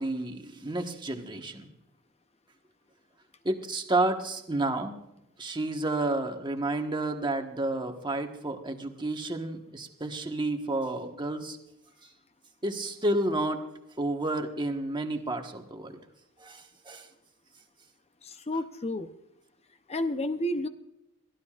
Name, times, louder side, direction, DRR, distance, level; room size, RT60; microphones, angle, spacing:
voice 1, 0.0-1.7 3.4-5.0 5.4-11.6 12.6-13.6 14.0-16.0 16.4-17.1, right 2 dB, 20° right, 4 dB, 1.4 m, -30 dB
voice 2, 18.2-19.1 19.9-20.7, left 1 dB, 30° left, 9 dB, 0.7 m, -31 dB
22.0 x 15.0 x 2.5 m, 0.87 s
head